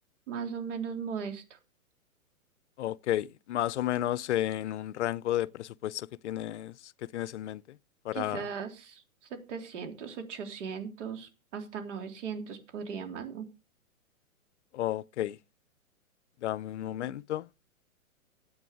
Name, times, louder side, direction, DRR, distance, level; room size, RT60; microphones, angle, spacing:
voice 1, 0.3-1.6 8.1-9.0 9.3-13.5, right 6 dB, 55° right, 3.5 m, -38 dB
voice 2, 2.8-7.8 8.0-8.5 14.7-15.4 16.4-17.5, left 13 dB, 55° left, 0.6 m, -32 dB
13.0 x 8.7 x 4.9 m
hypercardioid pair, 120°, 43 cm